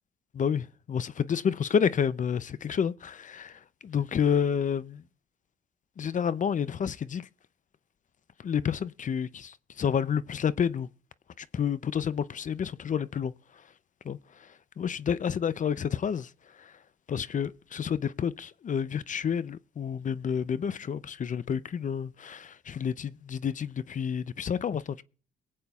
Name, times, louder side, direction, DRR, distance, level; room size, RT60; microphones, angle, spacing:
voice 1, 0.3-3.5 3.8-5.0 6.0-7.2 8.4-10.9 11.4-13.3 14.1-14.2 14.8-16.3 17.1-25.0, left 7 dB, 40° left, 0.6 m, -29 dB
22.5 x 8.5 x 2.4 m
cardioid pair, 90°, 20 cm